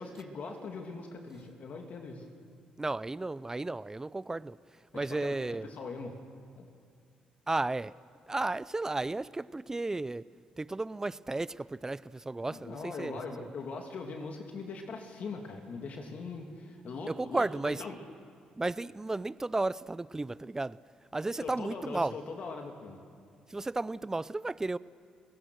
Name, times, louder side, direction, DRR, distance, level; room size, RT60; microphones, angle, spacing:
voice 1, 0.0-2.2 4.9-6.2 6.6-6.7 12.5-18.0 21.4-23.0, left 4 dB, 60° left, 2.8 m, -41 dB
voice 2, 2.8-4.6 4.9-5.7 7.5-7.9 8.3-10.3 10.6-13.5 17.1-17.8 18.6-20.8 21.1-22.1 23.5-24.8, right 2 dB, 20° right, 0.5 m, -33 dB
29.5 x 16.5 x 6.4 m
supercardioid pair, 70°, 3 cm